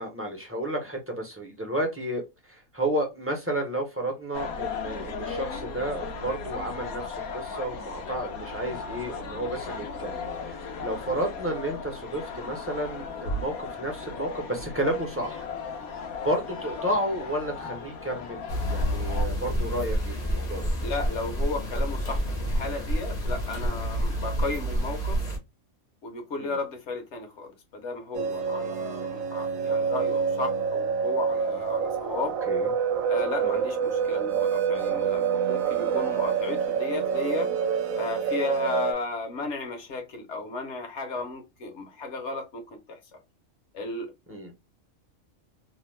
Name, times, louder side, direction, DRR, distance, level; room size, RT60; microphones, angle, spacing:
voice 1, 0.0-15.5 16.2-20.7 26.4-26.6 32.5-32.7 33.4-33.6 44.3-44.5, right 1 dB, 20° right, 0.4 m, -32 dB
sound 1, 4.3-19.2, left 4 dB, 90° left, 1.1 m, -36 dB
sound 2, 18.5-25.4, equal, 40° left, 0.7 m, -28 dB
voice 2, 20.8-25.2 26.0-32.4 33.1-37.5 37.9-43.2 43.7-44.1, left 3 dB, 60° left, 1.0 m, -34 dB
sound 3, 28.1-38.9, right 6 dB, 75° right, 1.0 m, -27 dB
2.8 x 2.1 x 3.1 m
omnidirectional pair, 1.4 m